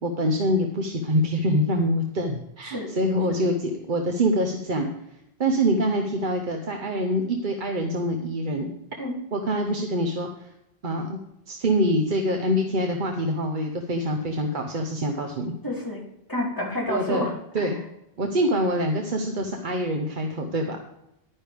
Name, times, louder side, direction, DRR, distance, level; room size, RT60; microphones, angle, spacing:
voice 1, 0.0-4.9 5.4-8.7 9.3-10.5 10.8-11.2 11.5-15.5 16.9-17.2 17.5-17.8 18.2-20.8, equal, 55° right, 3 dB, 1.1 m, -25 dB
voice 2, 15.6-16.0 16.3-17.7, left 1 dB, 20° left, -3 dB, 3.0 m, -29 dB
11.0 x 9.8 x 3.5 m, 0.82 s
omnidirectional pair, 1.0 m